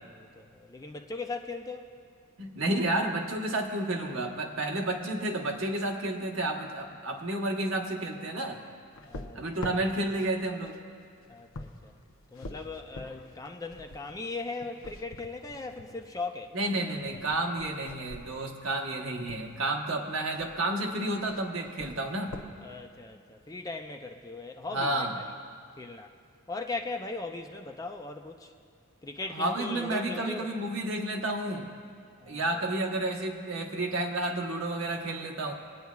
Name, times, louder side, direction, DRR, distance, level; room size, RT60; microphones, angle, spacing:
voice 1, 0.1-1.9 9.0-9.6 11.3-11.9 12.3-16.6 22.6-25.4 25.8-26.1 26.5-28.5 29.0-30.5 32.2-32.5, left 3 dB, 15° left, 4 dB, 0.4 m, -39 dB
voice 2, 2.4-8.6 9.3-10.8 16.5-22.4 24.7-25.1 29.3-31.7 32.3-35.5, right 1 dB, 65° right, 1 dB, 1.1 m, -31 dB
sound 1, 8.9-19.5 20.3-20.8 21.0-22.5, left 2 dB, 70° left, 0.7 m, -46 dB
25.5 x 9.3 x 2.4 m, 2.3 s
head